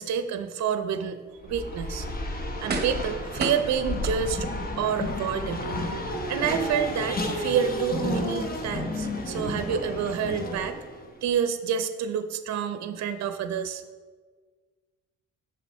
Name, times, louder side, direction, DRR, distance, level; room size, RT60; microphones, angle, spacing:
voice 1, 0.0-2.1 2.6-4.5 4.8-5.7 6.3-10.8 11.2-13.8, right 8 dB, 65° right, 9 dB, 0.6 m, -28 dB
Race car auto racing, 1.4-11.1, left 1 dB, 30° left, 0.9 m, -32 dB
sound 1, 1.8-1.9 2.7-3.1 3.4-4.6 5.2-5.3, right 4 dB, 35° right, 1.0 m, -33 dB
6.3 x 5.7 x 4.2 m, 1.5 s
cardioid pair, 90°, 30 cm